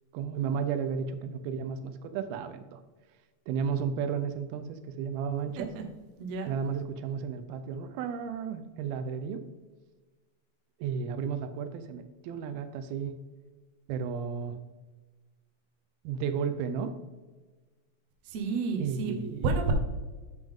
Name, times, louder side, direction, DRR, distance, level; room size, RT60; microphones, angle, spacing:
voice 1, 0.1-2.8 3.5-5.7 6.5-9.4 10.8-13.2 13.9-14.6 16.0-16.9 18.8-19.5, right 6 dB, 90° right, 10 dB, 2.6 m, -33 dB
voice 2, 6.2-6.5 18.3-19.7, right 4 dB, 65° right, 3 dB, 1.7 m, -30 dB
11.0 x 5.4 x 3.6 m, 1.3 s
omnidirectional pair, 4.2 m